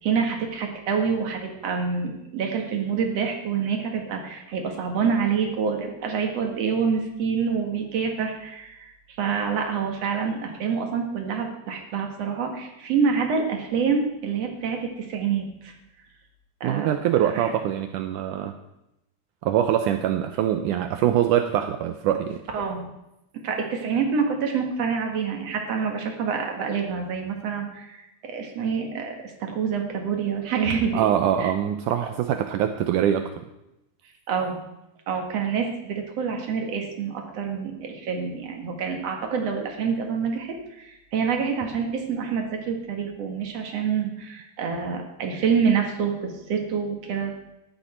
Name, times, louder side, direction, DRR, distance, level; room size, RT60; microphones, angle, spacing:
voice 1, 0.0-15.7 16.6-16.9 17.3-17.5 22.5-22.9 23.3-31.1 31.4-31.5 34.3-34.6 35.1-47.3, right 6 dB, 55° right, 3 dB, 2.2 m, -27 dB
voice 2, 16.6-18.5 19.4-22.4 30.9-33.4, right 10 dB, 85° right, 7 dB, 1.8 m, -23 dB
14.5 x 11.0 x 4.3 m, 0.90 s
omnidirectional pair, 4.3 m